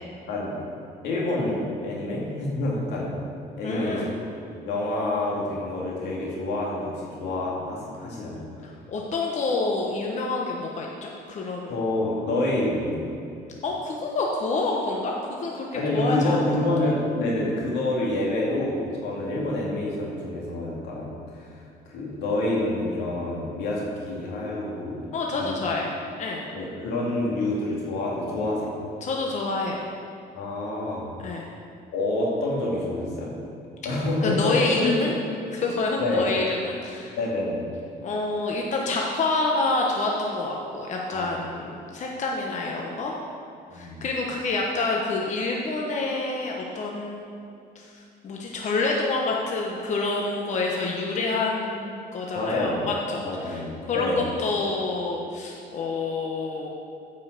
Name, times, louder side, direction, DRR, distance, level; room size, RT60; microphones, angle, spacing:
voice 1, 1.0-3.2 3.6-4.2 4.6-8.4 11.7-13.0 15.8-21.5 21.9-25.6 26.5-28.8 30.3-31.1 31.9-33.3 33.8-34.9 36.0-36.3 37.2-37.6 41.1-41.4 43.7-44.0 52.3-52.9 53.2-54.3, left 2 dB, 85° left, -4 dB, 2.4 m, -27 dB
voice 2, 3.6-4.1 8.6-11.8 13.6-16.4 25.1-25.9 26.2-26.4 29.0-29.8 31.2-31.5 34.2-35.2 35.5-37.2 38.0-43.1 43.7-47.3 47.7-56.7, left 3 dB, 45° left, -1 dB, 1.1 m, -28 dB
9.2 x 5.6 x 6.6 m, 2.5 s
cardioid pair, 110°, 17 cm